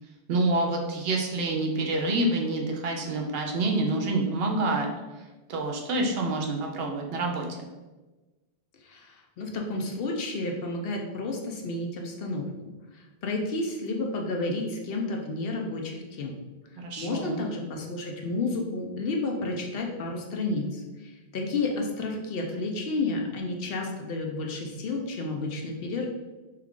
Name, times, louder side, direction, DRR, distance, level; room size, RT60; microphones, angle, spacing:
voice 1, 0.3-7.5 16.8-17.4, right 2 dB, 70° right, 1 dB, 0.8 m, -27 dB
voice 2, 8.8-16.3 17.0-26.1, left 2 dB, 65° left, 1 dB, 0.7 m, -31 dB
3.2 x 2.4 x 3.5 m, 1.2 s
omnidirectional pair, 1.1 m